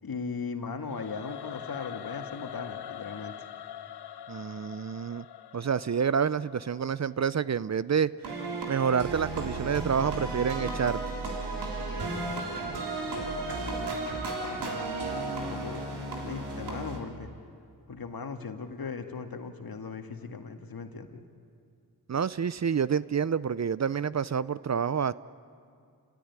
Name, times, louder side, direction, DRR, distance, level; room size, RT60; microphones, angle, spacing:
voice 1, 0.0-3.3 12.5-13.2 14.4-17.3 17.9-21.2, left 5 dB, 65° left, 5 dB, 2.1 m, -39 dB
Singing / Musical instrument, 0.8-7.9, left 10 dB, 80° left, 0.9 m, -44 dB
voice 2, 4.3-5.2 5.5-8.1 8.7-11.0 22.1-25.1, right 7 dB, 45° right, 17 dB, 0.6 m, -28 dB
sound 1, 8.2-17.0, right 3 dB, 85° right, 3.5 m, -34 dB
29.0 x 16.5 x 9.8 m, 2.4 s
cardioid pair, 45°, 39 cm